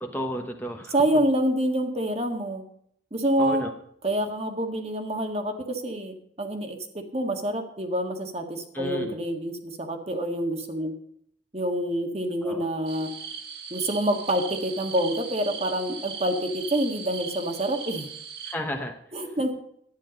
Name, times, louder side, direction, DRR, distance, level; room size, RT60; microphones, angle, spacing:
voice 1, 0.0-0.9 3.4-3.7 8.7-9.1 12.4-12.6 18.4-18.9, equal, 10° left, 3 dB, 1.1 m, -32 dB
voice 2, 0.9-2.6 3.1-3.6 4.0-10.9 11.5-13.1 13.7-18.1 19.1-19.6, right 1 dB, 35° right, 4 dB, 1.7 m, -27 dB
sound 1, 12.9-18.6, right 6 dB, 60° right, 1.4 m, -38 dB
12.0 x 9.8 x 5.2 m, 0.67 s
head